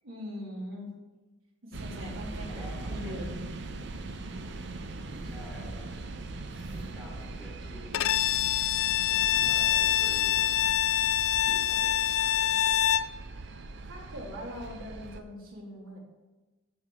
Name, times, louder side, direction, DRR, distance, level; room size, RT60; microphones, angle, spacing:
voice 1, 0.0-0.9 1.6-3.5 13.9-16.0, equal, 85° right, -3 dB, 3.1 m, -41 dB
sound 1, 1.7-15.2, right 2 dB, 55° right, 0.7 m, -40 dB
voice 2, 2.5-3.4 5.2-6.1 6.5-8.3 9.1-10.5 11.4-12.3, left 1 dB, ahead, -7 dB, 3.5 m, -48 dB
huh - Surprised and curious, 5.0-5.4 6.5-7.0 8.0-8.4 9.3-9.7, right 2 dB, 25° right, 0.4 m, -48 dB
Bowed string instrument, 7.9-13.2, left 11 dB, 85° left, 0.4 m, -25 dB
8.0 x 7.4 x 7.1 m, 1.2 s
head